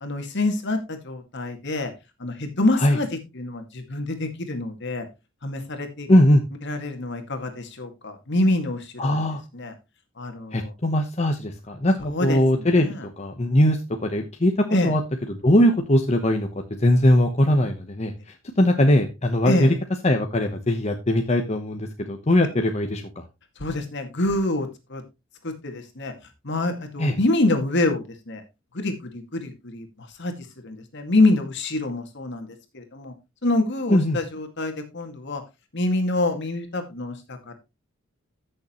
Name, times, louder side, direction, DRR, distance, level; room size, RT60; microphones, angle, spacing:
voice 1, 0.0-1.9 2.2-3.1 3.3-5.1 5.4-6.1 6.6-9.2 9.5-9.7 10.2-10.7 12.0-12.4 12.8-13.1 14.7-14.9 19.4-19.7 23.6-25.0 25.4-26.1 26.4-28.4 28.7-30.3 30.6-33.1 33.4-35.4 35.7-37.5, left 2 dB, 60° left, 6 dB, 2.1 m, -26 dB
voice 2, 6.1-6.4 9.0-9.4 10.5-12.9 13.2-15.0 15.3-19.7 20.0-23.2 27.0-27.1 33.9-34.2, left 1 dB, 35° left, 4 dB, 1.1 m, -20 dB
14.5 x 6.7 x 3.1 m, 0.25 s
head